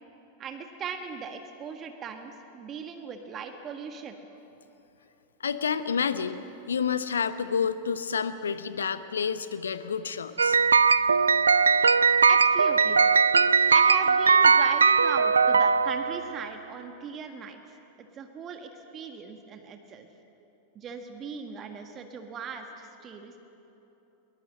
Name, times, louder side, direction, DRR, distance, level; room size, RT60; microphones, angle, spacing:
voice 1, 0.4-4.2 12.2-13.1 13.5-20.1 20.7-23.4, right 6 dB, 30° right, 5 dB, 1.7 m, -39 dB
voice 2, 5.4-6.4 6.7-10.6, left 6 dB, 70° left, 12 dB, 1.0 m, -29 dB
sound 1, 10.4-16.4, right 5 dB, 75° right, 0.4 m, -20 dB
22.0 x 21.0 x 7.8 m, 3.0 s
figure-of-eight pair, 90°, 0 cm